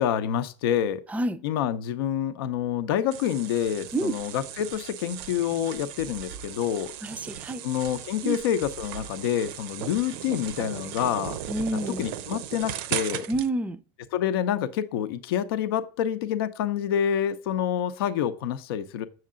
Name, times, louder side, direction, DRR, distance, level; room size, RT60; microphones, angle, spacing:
voice 1, 0.0-1.0 1.4-6.9 7.6-11.4 12.0-13.3 14.1-19.1, left 9 dB, 90° left, 0.7 m, -27 dB
voice 2, 1.1-1.4 3.9-4.1 7.0-7.7 8.2-8.4 11.5-12.0 13.3-13.8, right 2 dB, 10° right, 0.5 m, -28 dB
sound 1, 3.1-13.5, right 10 dB, 80° right, 0.6 m, -37 dB
7.7 x 6.5 x 3.7 m
supercardioid pair, 120°, 12 cm